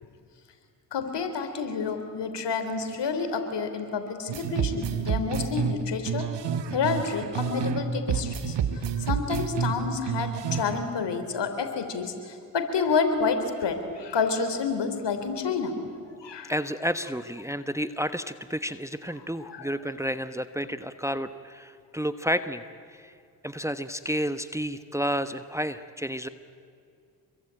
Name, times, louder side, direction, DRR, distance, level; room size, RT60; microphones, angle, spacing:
voice 1, 0.9-6.3 6.7-8.6 9.0-15.8 16.2-16.5 19.5-19.7, left 5 dB, 60° left, 7 dB, 3.7 m, -29 dB
sound 1, 4.3-7.8 8.1-10.8, right 7 dB, 60° right, 1.5 m, -29 dB
voice 2, 16.5-22.6 22.9-23.1 23.4-26.3, equal, 5° right, 11 dB, 1.2 m, -31 dB
26.0 x 23.0 x 9.0 m, 2.3 s
hypercardioid pair, 40°, 46 cm